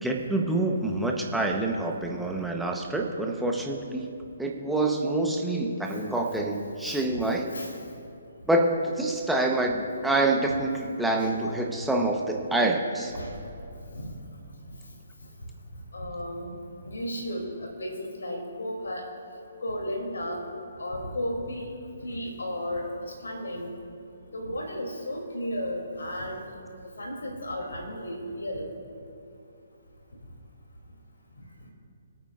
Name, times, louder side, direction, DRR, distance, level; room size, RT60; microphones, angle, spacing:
voice 1, 0.0-4.1 4.4-7.5 8.5-13.1, right 2 dB, 5° right, 0 dB, 1.1 m, -26 dB
voice 2, 6.8-7.2 7.5-7.7 11.2-11.3 13.1-13.4 13.9-14.1 15.9-19.0 19.6-20.4 20.8-21.7 22.0-23.7 24.3-26.4 27.0-28.7, equal, 75° left, 0 dB, 3.1 m, -34 dB
26.0 x 8.8 x 2.6 m, 2.6 s
figure-of-eight pair, 135°, 0 cm